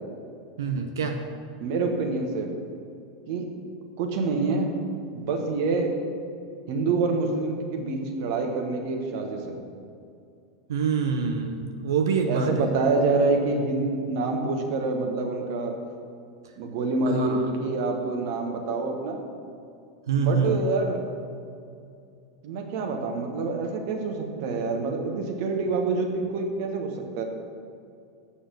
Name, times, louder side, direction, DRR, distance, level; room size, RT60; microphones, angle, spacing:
voice 1, 0.6-1.2 10.7-12.7 17.1-17.5 20.1-20.6, right 5 dB, 65° right, 4 dB, 0.6 m, -25 dB
voice 2, 1.6-2.5 3.3-3.5 4.0-4.8 5.1-5.9 6.7-9.6 12.3-15.7 16.6-19.2 20.2-21.0 22.4-27.2, right 3 dB, 50° right, 3 dB, 1.3 m, -26 dB
8.0 x 6.2 x 6.2 m, 2.4 s
figure-of-eight pair, 85°, 2 cm